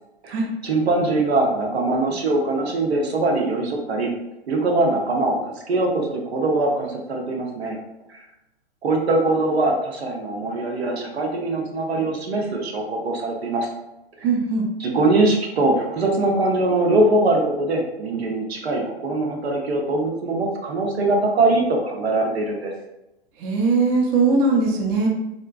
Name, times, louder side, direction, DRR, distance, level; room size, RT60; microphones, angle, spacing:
voice 1, 0.2-4.1 4.5-7.8 8.8-13.7 14.8-22.7, right 2 dB, 80° right, 1 dB, 0.7 m, -22 dB
voice 2, 14.2-14.7 23.4-25.1, right 3 dB, 35° right, 0 dB, 0.7 m, -20 dB
3.7 x 2.1 x 2.3 m, 0.92 s
hypercardioid pair, 110°, 31 cm